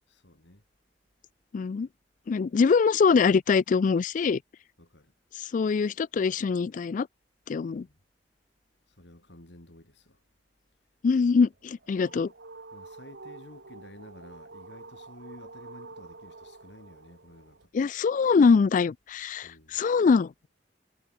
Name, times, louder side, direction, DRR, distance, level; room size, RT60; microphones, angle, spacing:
voice 1, 0.1-0.6 4.8-5.1 7.7-8.0 9.0-10.2 12.7-17.7 19.4-19.8, left 1 dB, 80° left, 5.8 m, -52 dB
voice 2, 1.5-1.9 2.3-4.4 5.4-7.1 7.5-7.9 11.0-12.3 17.7-20.3, left 5 dB, 45° left, 0.3 m, -23 dB
sound 1, 11.5-17.7, right 3 dB, 70° right, 1.9 m, -48 dB
head